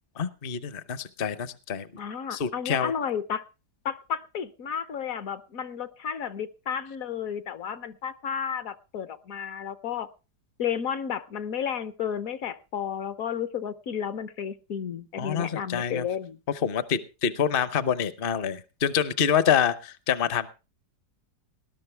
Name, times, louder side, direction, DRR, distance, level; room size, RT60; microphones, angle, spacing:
voice 1, 0.2-1.9 2.3-2.9 15.2-16.0 16.6-20.5, left 8 dB, 45° left, 13 dB, 0.8 m, -26 dB
voice 2, 2.0-3.4 3.8-10.1 10.6-16.4, left 8 dB, 65° left, 12 dB, 1.2 m, -32 dB
19.5 x 11.5 x 3.3 m, 0.31 s
omnidirectional pair, 1.7 m